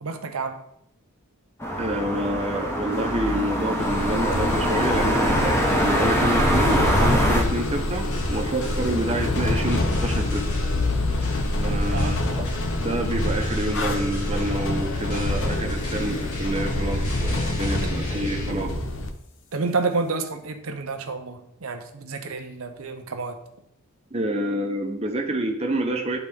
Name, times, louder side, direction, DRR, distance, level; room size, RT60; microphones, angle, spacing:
voice 1, 0.0-0.6 11.9-12.2 17.8-18.0 19.5-23.4, right 3 dB, 70° right, 6 dB, 0.8 m, -29 dB
sound 1, 1.6-7.4, equal, 10° left, 0.9 m, -24 dB
voice 2, 1.8-10.5 11.6-12.5 12.8-18.8 24.1-26.2, right 1 dB, 25° right, 2 dB, 0.8 m, -28 dB
sound 2, 3.8-19.1, left 1 dB, 55° left, 0.7 m, -26 dB
sound 3, 6.8-18.5, left 2 dB, 85° left, 1.8 m, -39 dB
10.5 x 3.9 x 3.6 m, 0.77 s
head